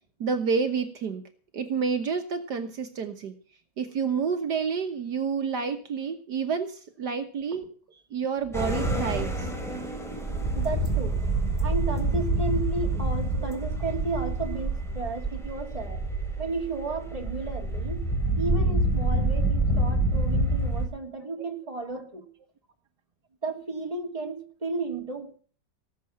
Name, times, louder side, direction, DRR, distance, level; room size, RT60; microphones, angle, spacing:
voice 1, 0.2-1.2 1.5-3.3 3.8-7.7 8.1-9.5 13.4-13.6 21.9-22.0, right 5 dB, 65° right, 7 dB, 1.8 m, -29 dB
sound 1, 8.5-20.9, right 1 dB, ahead, 3.8 m, -27 dB
voice 2, 10.3-11.3 11.6-16.0 16.4-18.1 18.4-22.3 23.4-25.4, right 3 dB, 20° right, 3 dB, 2.7 m, -33 dB
18.5 x 7.6 x 7.0 m, 0.42 s
omnidirectional pair, 1.9 m